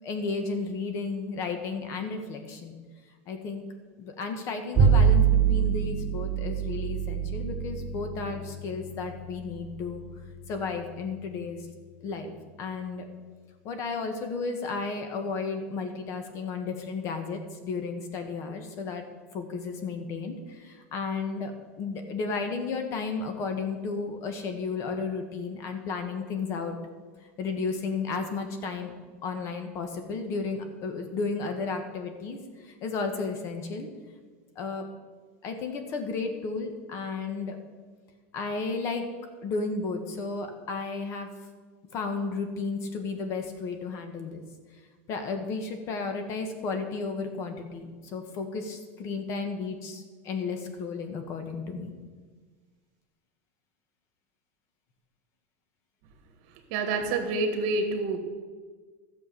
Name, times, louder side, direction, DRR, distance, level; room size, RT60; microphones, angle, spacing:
voice 1, 0.0-2.8 3.3-3.7 4.0-10.0 10.5-11.7 12.0-12.3 12.6-13.0 13.6-19.0 19.3-21.5 21.8-26.8 27.4-28.9 29.2-33.9 34.5-34.9 35.4-37.6 38.3-39.0 39.4-41.3 41.9-44.4 45.1-51.9, left 4 dB, 45° left, 6 dB, 1.6 m, -33 dB
Bowed string instrument, 4.7-11.2, right 7 dB, 20° right, 2.4 m, -26 dB
voice 2, 56.7-58.2, right 3 dB, 60° right, 7 dB, 1.7 m, -27 dB
13.0 x 7.2 x 7.0 m, 1.5 s
supercardioid pair, 150°, 7 cm